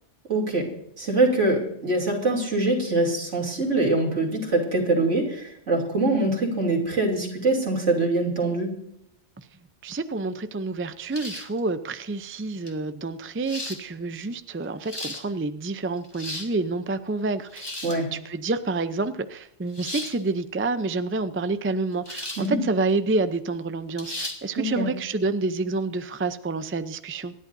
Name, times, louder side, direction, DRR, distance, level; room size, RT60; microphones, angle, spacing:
voice 1, 0.3-0.7 1.0-8.8 17.8-18.1 22.4-22.6 24.6-24.9, right 2 dB, 80° right, -1 dB, 3.4 m, -24 dB
voice 2, 9.8-17.7 18.1-27.3, right 3 dB, 20° right, 11 dB, 0.4 m, -28 dB
sound 1, 11.1-11.6 12.7-12.8 13.4-13.8 14.6-15.2 16.0-16.5 17.5-18.0 19.7-20.2 22.1-22.5 22.9-23.0 24.0-24.4, left 1 dB, 20° left, 1.6 m, -35 dB
26.0 x 11.0 x 2.7 m, 0.74 s
omnidirectional pair, 1.2 m